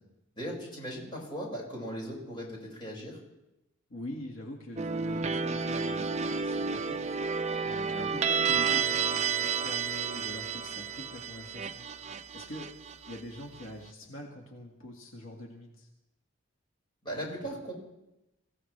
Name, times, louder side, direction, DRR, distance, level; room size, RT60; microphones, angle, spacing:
voice 1, 0.4-3.2 17.0-17.7, equal, 25° left, -3 dB, 5.6 m, -38 dB
voice 2, 3.9-11.9 12.3-12.7 13.1-15.9, left 1 dB, 70° left, 0 dB, 1.8 m, -44 dB
sound 1, 4.8-13.6, right 5 dB, 35° right, 0.5 m, -31 dB
25.0 x 16.0 x 3.3 m, 0.92 s
head